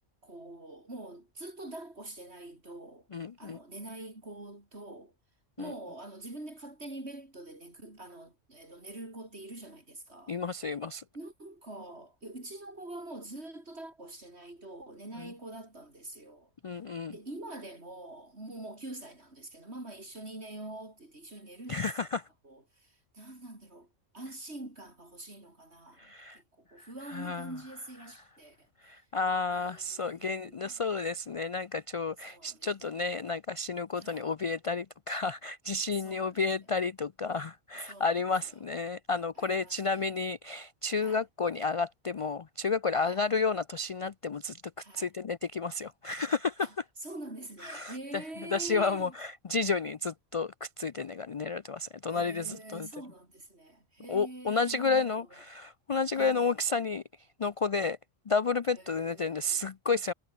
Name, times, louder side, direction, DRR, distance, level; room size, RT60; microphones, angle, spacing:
voice 1, 0.2-3.1 3.4-5.1 5.6-10.4 11.1-16.5 17.1-21.9 22.4-29.0 29.5-30.8 32.3-33.0 34.0-34.3 36.0-36.4 37.7-38.6 39.4-40.0 40.9-41.2 43.0-43.2 44.8-45.1 46.6-49.2 52.1-55.4 56.2-56.5 58.7-59.6, right 2 dB, 55° right, 6.0 m, -45 dB
voice 2, 3.1-3.6 5.6-5.7 10.3-11.0 16.6-17.1 21.7-22.2 26.0-26.4 26.8-27.5 28.8-44.6 44.9-46.7 47.7-47.9 48.5-52.9 54.1-57.0 57.4-58.0 58.3-60.1, left 4 dB, 60° left, 0.3 m, -31 dB
omnidirectional pair, 1.3 m